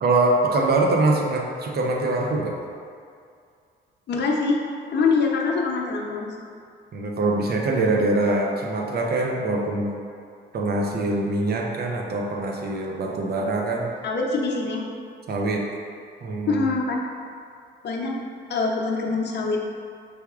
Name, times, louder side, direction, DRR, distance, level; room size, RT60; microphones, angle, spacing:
voice 1, 0.0-2.6 6.9-9.9 10.5-13.9 15.3-15.7 16.2-16.7, right 2 dB, 55° right, 0 dB, 0.7 m, -23 dB
voice 2, 4.1-4.6 4.9-6.3 14.0-14.9 16.5-17.0 17.8-18.2 18.5-19.6, left 4 dB, 60° left, -1 dB, 0.7 m, -24 dB
5.6 x 3.4 x 2.4 m, 2.3 s
cardioid pair, 90°, 20 cm